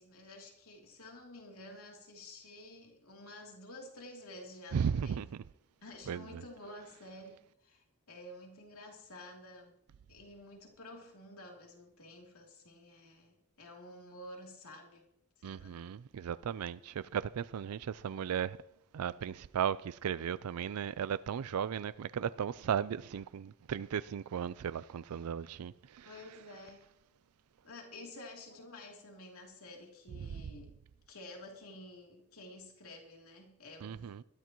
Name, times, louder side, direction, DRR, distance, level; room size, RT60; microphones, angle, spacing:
voice 1, 0.0-5.3 5.8-9.7 10.1-15.1 15.4-15.8 26.0-26.8 27.6-30.7 31.1-34.1, left 1 dB, 75° left, 3.0 m, -51 dB
voice 2, 4.7-5.4 6.1-6.4 15.4-18.6 18.9-26.1 30.3-30.5 33.8-34.2, right 8 dB, 90° right, 0.4 m, -36 dB
20.5 x 13.5 x 3.0 m
head